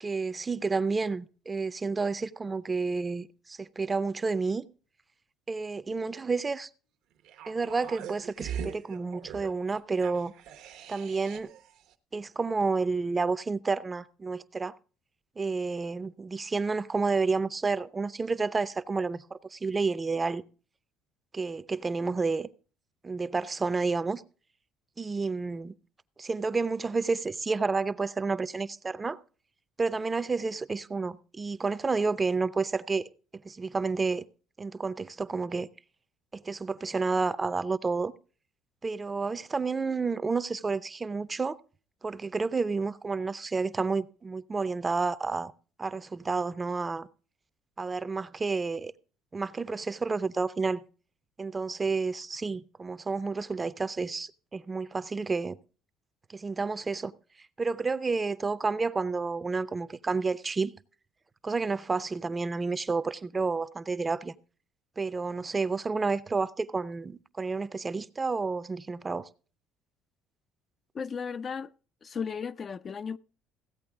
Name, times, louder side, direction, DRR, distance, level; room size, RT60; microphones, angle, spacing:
voice 1, 0.0-4.7 5.5-6.7 7.5-10.3 10.9-11.5 12.1-14.7 15.4-20.4 21.3-22.5 23.0-24.2 25.0-25.7 26.2-29.2 29.8-33.1 33.4-34.3 34.6-35.7 36.3-38.1 38.8-41.6 42.0-45.5 45.8-47.1 47.8-48.9 49.3-50.8 51.4-55.6 56.3-57.1 57.6-60.7 61.4-64.3 65.0-69.3, right 4 dB, 25° right, 0.6 m, -30 dB
sound 1, 7.2-11.7 11.9-12.0, right 8 dB, 75° right, 1.0 m, -41 dB
voice 2, 70.9-71.7 72.0-73.2, left 6 dB, 35° left, 0.4 m, -35 dB
16.0 x 8.4 x 3.5 m
supercardioid pair, 95°, 0 cm